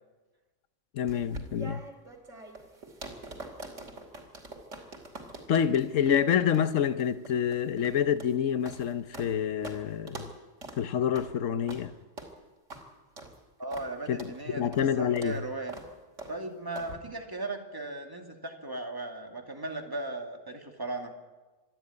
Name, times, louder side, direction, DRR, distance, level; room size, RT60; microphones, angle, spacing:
voice 1, 0.9-1.8 5.5-10.2 10.8-11.9 14.1-15.4, left 8 dB, 85° left, 1.2 m, -27 dB
sound 1, 1.1-9.3 9.6-9.8 10.1-10.3 10.6-10.8 11.1-11.3 11.7-11.8 12.2-12.3 12.7-12.8 13.2-13.3 13.7-13.9 14.2-14.3 14.7-14.9 15.2-15.3 15.7-15.9 16.2-16.3 16.7-16.9, right 2 dB, 80° right, 3.1 m, -44 dB
voice 2, 13.6-15.7 16.3-21.1, right 2 dB, 15° right, 2.4 m, -37 dB
26.0 x 11.0 x 9.7 m
omnidirectional pair, 1.3 m